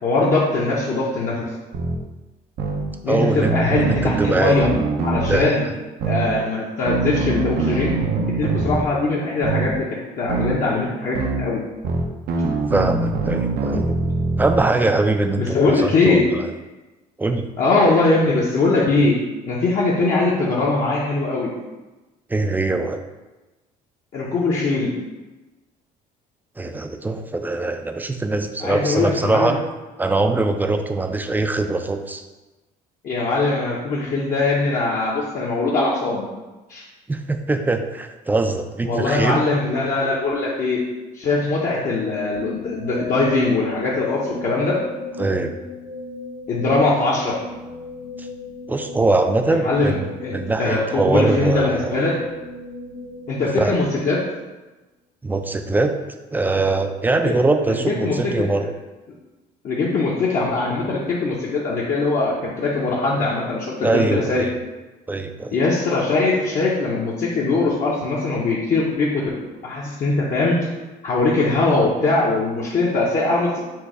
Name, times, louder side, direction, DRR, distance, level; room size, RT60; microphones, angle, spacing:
voice 1, 0.0-1.4 3.0-4.7 5.0-5.6 6.0-8.0 8.4-11.6 15.4-16.3 17.6-19.1 19.5-21.5 24.1-24.9 28.6-29.6 33.0-36.3 36.7-36.8 38.8-40.8 41.1-44.8 46.5-47.4 49.5-49.9 50.2-52.2 53.3-54.2 57.2-57.4 57.7-58.5 59.6-64.5 65.5-69.3 69.6-70.6 71.0-73.6, left 3 dB, 50° left, -6 dB, 0.8 m, -21 dB
sound 1, 1.7-2.0 2.6-2.8 3.4-5.4 6.0-6.3 6.9-8.8 9.4-9.7 10.3-10.6 11.1-11.4 11.8-14.6, right 3 dB, 70° right, 0.6 m, -23 dB
voice 2, 3.1-4.6 5.3-5.5 12.7-14.0 14.4-16.2 17.2-17.5 22.3-23.0 26.6-29.6 30.0-32.2 37.1-39.4 45.2-45.6 48.2-48.3 48.7-51.9 53.6-53.8 55.2-56.0 56.3-58.7 63.8-64.5 65.1-65.6, right 2 dB, 10° right, 6 dB, 0.3 m, -22 dB
sound 2, 42.3-54.4, left 3 dB, 75° left, 1.3 m, -36 dB
4.5 x 2.3 x 4.7 m, 1.1 s
cardioid pair, 110°, 17 cm